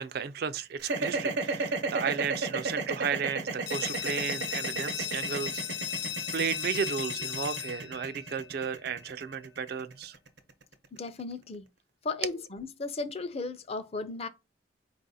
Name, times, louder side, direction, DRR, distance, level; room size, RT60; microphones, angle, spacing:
voice 1, 0.0-5.6 6.3-10.2, right 6 dB, 60° right, 0.4 m, -34 dB
sound 1, 0.8-11.0, right 3 dB, 85° right, 0.8 m, -33 dB
sound 2, 3.7-9.1, left 8 dB, 90° left, 0.6 m, -36 dB
voice 2, 10.9-11.6 12.0-14.3, left 3 dB, 35° left, 0.5 m, -35 dB
4.2 x 2.4 x 4.0 m
head